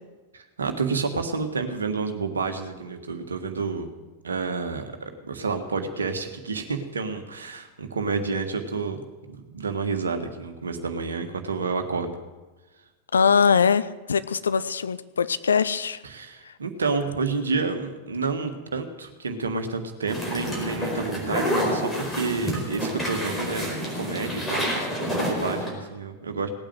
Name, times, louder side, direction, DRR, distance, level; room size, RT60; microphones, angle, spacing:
voice 1, 0.3-3.9 4.2-9.0 9.3-12.1 16.0-26.5, right 4 dB, 70° right, 6 dB, 1.6 m, -29 dB
voice 2, 13.1-16.0, left 6 dB, 70° left, 14 dB, 0.6 m, -22 dB
sound 1, 20.1-25.7, equal, 10° left, 4.6 m, -28 dB
18.0 x 9.0 x 7.7 m, 1.2 s
figure-of-eight pair, 90°, 0 cm